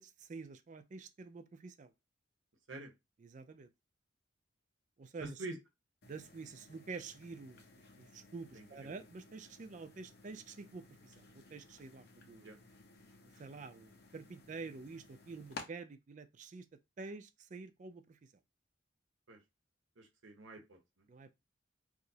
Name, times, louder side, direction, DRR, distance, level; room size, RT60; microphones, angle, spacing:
voice 1, 0.0-1.9 3.2-3.7 5.0-5.4 6.0-7.6 8.0-12.5 13.4-16.7 17.0-18.2 21.1-21.3, right 4 dB, 40° right, 0.3 m, -48 dB
voice 2, 5.2-5.6 8.5-8.9 12.4-12.6 19.3-19.4 20.0-21.0, right 2 dB, 75° right, 0.9 m, -47 dB
sound 1, 6.0-15.6, left 3 dB, 50° left, 0.7 m, -56 dB
4.8 x 2.0 x 2.7 m
head